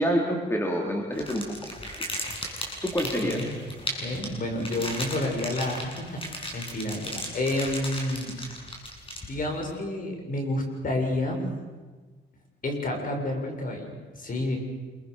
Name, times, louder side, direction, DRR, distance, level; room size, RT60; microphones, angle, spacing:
voice 1, 0.0-2.3 2.8-3.5, equal, 10° left, 1 dB, 3.9 m, -28 dB
sound 1, 1.1-9.6, left 1 dB, 25° left, 7.7 m, -36 dB
voice 2, 4.0-8.5 9.3-11.4 12.6-14.6, left 1 dB, 45° left, 2 dB, 7.3 m, -30 dB
28.0 x 23.5 x 6.8 m, 1.3 s
cardioid pair, 90°, 20 cm